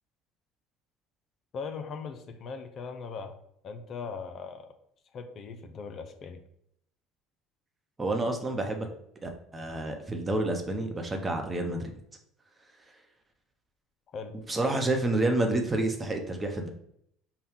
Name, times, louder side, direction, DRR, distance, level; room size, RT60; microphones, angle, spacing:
voice 1, 1.5-3.4 3.6-4.7 5.1-6.4 14.1-14.4, left 5 dB, 45° left, 7 dB, 0.5 m, -39 dB
voice 2, 8.0-8.9 9.2-11.9 14.3-16.7, right 2 dB, 20° right, 3 dB, 0.9 m, -29 dB
5.4 x 2.3 x 3.6 m, 0.73 s
hypercardioid pair, 65°, 0 cm